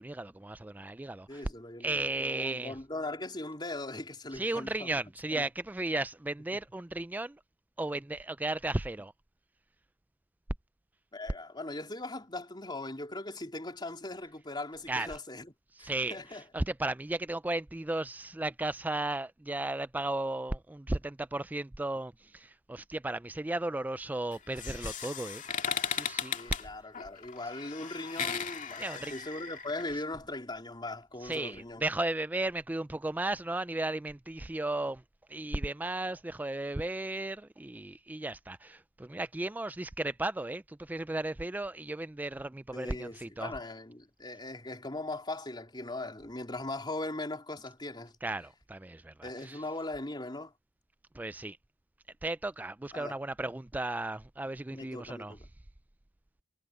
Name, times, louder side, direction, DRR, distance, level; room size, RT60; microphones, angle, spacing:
voice 1, 0.0-1.4 1.8-2.7 4.3-7.4 7.8-9.1 14.9-15.2 15.8-25.4 25.8-26.7 28.8-29.1 31.2-35.0 35.3-43.5 48.2-49.6 51.1-51.6 52.2-55.3, right 2 dB, 10° right, 0.3 m, -35 dB
voice 2, 1.3-5.0 5.3-5.4 11.1-15.5 15.8-16.4 26.3-31.8 42.7-48.1 49.2-50.5 52.9-53.2 54.7-55.5, left 2 dB, 25° left, 3.8 m, -39 dB
sound 1, 24.3-29.9, left 7 dB, 45° left, 2.3 m, -37 dB
head